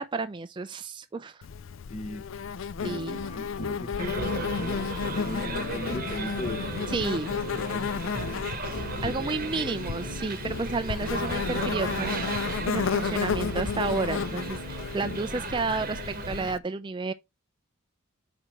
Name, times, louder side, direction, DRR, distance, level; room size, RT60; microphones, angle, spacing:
voice 1, 0.0-1.4 2.8-3.2 6.9-7.3 9.0-17.1, right 4 dB, 20° right, 0.3 m, -31 dB
Insect, 1.4-16.6, left 6 dB, 60° left, 0.4 m, -33 dB
voice 2, 1.9-2.2 2.8-7.0 7.5-8.5 8.9-9.2, left 2 dB, 30° left, 0.7 m, -38 dB
sound 1, 2.9-15.6, left 2 dB, 80° left, 0.9 m, -39 dB
sound 2, 4.0-16.5, right 3 dB, 40° right, 1.0 m, -36 dB
5.1 x 4.5 x 4.4 m
head